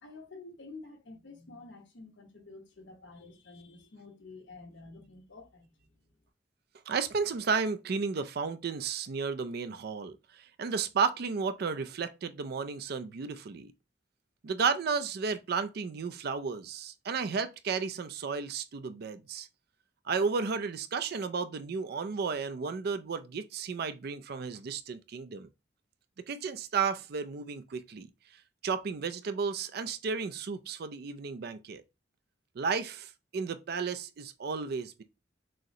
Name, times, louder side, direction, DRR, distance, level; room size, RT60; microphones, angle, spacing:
voice 1, 0.0-6.2, left 3 dB, 80° left, 1.1 m, -50 dB
voice 2, 6.9-13.7 14.4-19.5 20.0-25.5 26.3-28.1 28.6-31.8 32.6-35.0, right 5 dB, 60° right, 0.4 m, -33 dB
6.2 x 2.1 x 2.8 m
head